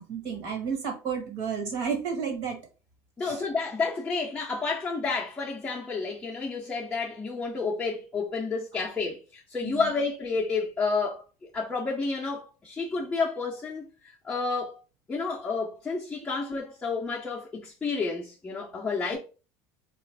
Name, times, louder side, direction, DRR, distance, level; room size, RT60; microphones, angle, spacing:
voice 1, 0.0-2.6 3.2-3.4 9.6-9.9, right 6 dB, 60° right, 1.4 m, -32 dB
voice 2, 3.2-11.2 11.5-14.7 15.1-19.2, left 4 dB, 10° left, 0.5 m, -30 dB
4.1 x 2.4 x 3.3 m
cardioid pair, 160°, 8 cm